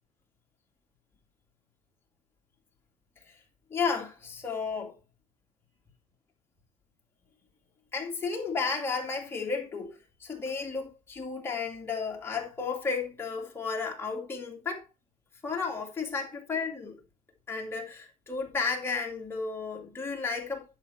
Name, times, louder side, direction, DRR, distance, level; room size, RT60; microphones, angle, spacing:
voice 1, 3.7-4.9 7.9-14.9 15.4-17.0 17.5-20.7, left 5 dB, 15° left, 2.4 m, -33 dB
10.5 x 5.8 x 4.2 m
cardioid pair, 175°, 14 cm